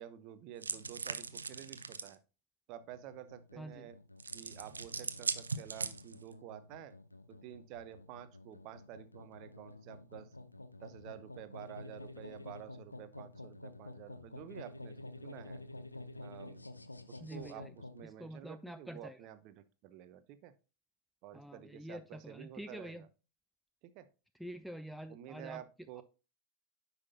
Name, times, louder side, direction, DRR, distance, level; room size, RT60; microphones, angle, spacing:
voice 1, 0.0-2.2 2.7-3.9 4.3-6.9 7.3-10.3 10.8-15.0 15.2-15.6 16.2-16.7 17.1-20.5 21.2-23.1 23.8-24.1 25.1-26.0, right 12 dB, 40° right, 13 dB, 0.7 m, -50 dB
sound 1, 0.6-2.1 4.2-6.3, right 4 dB, 75° right, 0.6 m, -40 dB
sound 2, 2.8-18.0, left 2 dB, 85° left, 0.6 m, -50 dB
voice 2, 3.6-3.9 17.2-17.8 18.0-19.3 21.3-23.1 24.3-26.0, equal, ahead, 11 dB, 0.3 m, -47 dB
9.6 x 5.8 x 2.8 m, 0.33 s
figure-of-eight pair, 90°, 0 cm